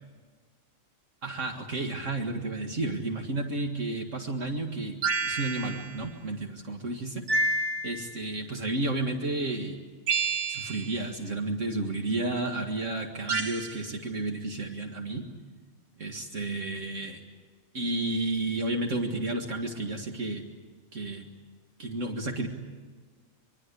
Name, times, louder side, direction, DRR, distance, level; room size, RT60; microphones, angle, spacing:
voice 1, 1.2-5.0 5.2-7.2 7.8-9.8 10.5-15.3 16.0-17.2 17.7-20.4 20.9-21.3 21.8-22.5, right 2 dB, 65° right, 3 dB, 2.2 m, -32 dB
sound 1, 5.0-6.0 7.3-8.2 10.1-11.0 13.3-13.8, right 3 dB, 85° right, 1.6 m, -29 dB
25.5 x 23.0 x 8.4 m, 1.4 s
omnidirectional pair, 1.4 m